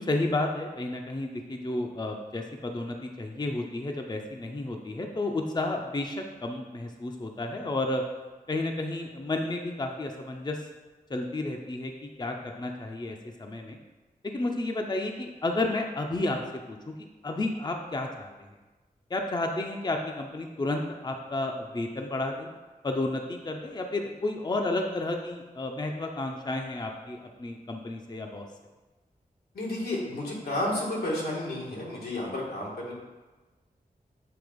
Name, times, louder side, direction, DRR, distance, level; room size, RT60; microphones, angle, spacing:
voice 1, 0.0-8.0 8.5-10.6 11.1-13.8 14.3-16.4 16.7-18.3 19.1-22.5 22.8-28.5, left 2 dB, 25° left, 2 dB, 0.6 m, -31 dB
voice 2, 29.5-32.9, left 1 dB, 90° left, -5 dB, 1.7 m, -31 dB
7.8 x 2.9 x 5.1 m, 1.2 s
wide cardioid pair, 70°, 16 cm